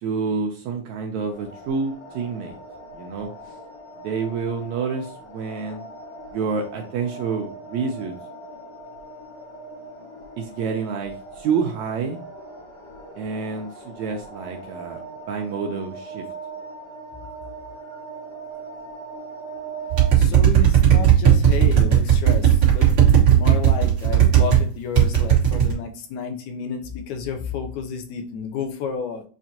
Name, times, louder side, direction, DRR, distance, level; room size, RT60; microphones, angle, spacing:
voice 1, 0.0-2.6 2.9-3.3 4.0-5.8 6.3-8.2 10.4-12.2 13.2-15.0 15.3-16.2, right 5 dB, 75° right, 2 dB, 1.7 m, -28 dB
sound 1, 1.3-20.1, right 3 dB, 50° left, 1.3 m, -40 dB
sound 2, 19.9-24.6 24.9-25.7, right 10 dB, 45° right, 1.8 m, -15 dB
voice 2, 20.2-22.9 23.4-29.2, left 6 dB, 80° left, 5 dB, 1.8 m, -31 dB
7.3 x 2.5 x 2.8 m, 0.42 s
omnidirectional pair, 3.7 m